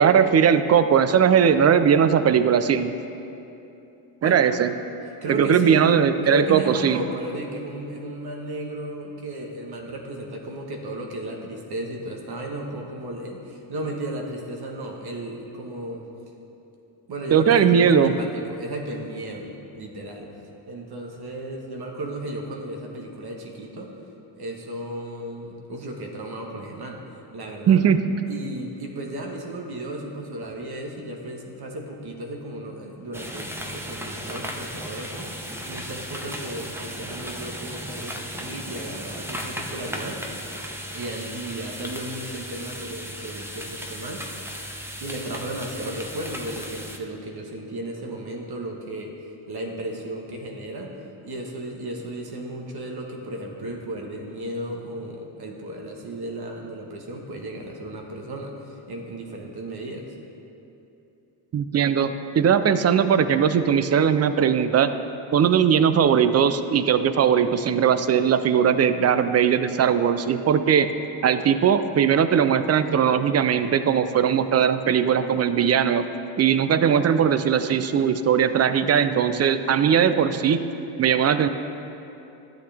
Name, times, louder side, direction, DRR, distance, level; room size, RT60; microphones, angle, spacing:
voice 1, 0.0-3.0 4.2-4.7 5.3-7.0 17.3-18.1 27.7-28.0 61.5-64.9 65.3-70.9 71.2-76.1 76.4-80.7 81.0-81.5, right 8 dB, 30° right, 11 dB, 0.5 m, -19 dB
voice 2, 5.2-16.1 17.1-20.3 20.7-23.9 24.3-27.0 27.3-27.9 28.3-40.2 40.9-44.3 45.0-49.1 49.5-50.9 51.2-60.1, right 1 dB, 50° right, 1 dB, 1.4 m, -34 dB
sound 1, 33.1-47.0, equal, 5° right, 0.8 m, -35 dB
11.5 x 8.0 x 3.4 m, 2.8 s
supercardioid pair, 70°, 50 cm